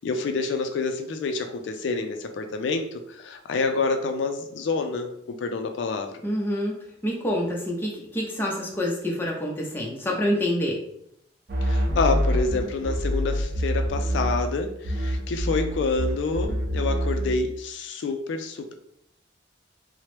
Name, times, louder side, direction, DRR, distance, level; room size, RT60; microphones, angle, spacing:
voice 1, 0.0-6.1 11.6-18.7, left 3 dB, 85° left, 5 dB, 0.3 m, -28 dB
voice 2, 6.2-6.8 7.0-10.8, left 1 dB, 10° left, -2 dB, 0.5 m, -27 dB
sound 1, 11.5-14.6 14.8-17.4, equal, 55° right, 0.5 m, -26 dB
2.9 x 2.0 x 3.1 m, 0.75 s
head